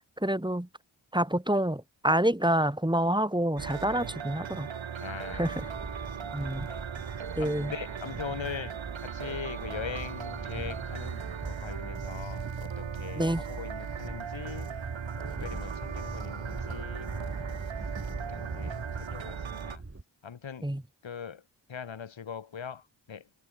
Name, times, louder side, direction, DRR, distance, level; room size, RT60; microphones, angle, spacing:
voice 1, 0.2-0.7 1.1-4.7 5.3-5.7 6.3-6.7 7.4-7.7 13.1-13.4 20.6-20.8, right 1 dB, 10° right, 6.2 m, -27 dB
sound 1, 3.6-19.8, right 7 dB, 90° right, 3.5 m, -38 dB
voice 2, 5.0-5.6 6.2-6.8 7.4-8.7 9.0-14.7 15.4-17.6 18.3-18.8 19.1-19.8 20.2-20.7 21.0-21.4 21.7-22.8 23.1-23.2, left 7 dB, 85° left, 4.9 m, -41 dB
sound 2, 5.3-20.0, right 2 dB, 30° right, 7.4 m, -42 dB
cardioid pair, 50°, 44 cm